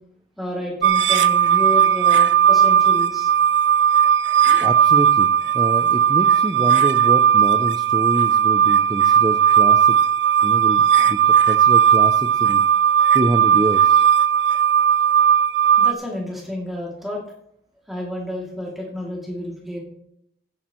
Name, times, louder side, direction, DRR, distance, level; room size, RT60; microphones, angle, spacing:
voice 1, 0.4-3.3 15.8-17.2 17.9-19.8, left 1 dB, ahead, -4 dB, 2.5 m, -30 dB
sound 1, 0.8-15.9, right 9 dB, 80° right, 0.6 m, -16 dB
voice 2, 4.6-5.3 5.5-10.0 10.4-12.6 13.1-14.0, right 1 dB, 20° right, 8 dB, 0.4 m, -26 dB
15.5 x 8.5 x 3.1 m, 0.74 s
head